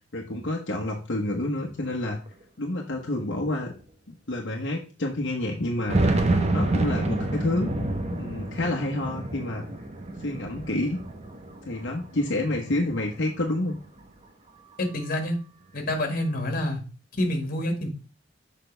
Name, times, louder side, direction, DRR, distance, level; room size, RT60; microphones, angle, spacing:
voice 1, 0.1-2.2 2.6-3.7 4.1-6.2 6.5-7.7 8.1-9.7 10.2-11.0 11.6-13.8, left 1 dB, 75° left, -1 dB, 1.1 m, -29 dB
sound 1, 2.0-2.1 2.3-2.4 3.2-3.3 3.8-3.9 5.5-11.9 12.3-13.3, right 2 dB, 35° right, 1.1 m, -28 dB
voice 2, 14.8-15.4 15.7-16.8 17.2-17.9, left 1 dB, 50° left, 4 dB, 1.9 m, -27 dB
6.6 x 5.5 x 3.3 m, 0.35 s
head